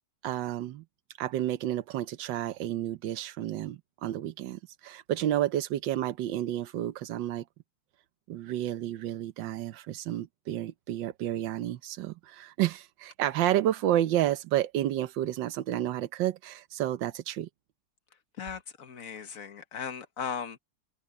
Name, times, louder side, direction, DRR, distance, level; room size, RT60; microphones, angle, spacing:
voice 1, 0.2-0.8 1.2-7.4 8.3-17.5, right 12 dB, 80° right, 1.5 m, -30 dB
voice 2, 18.4-20.6, left 7 dB, 50° left, 1.6 m, -37 dB
omnidirectional pair, 2.0 m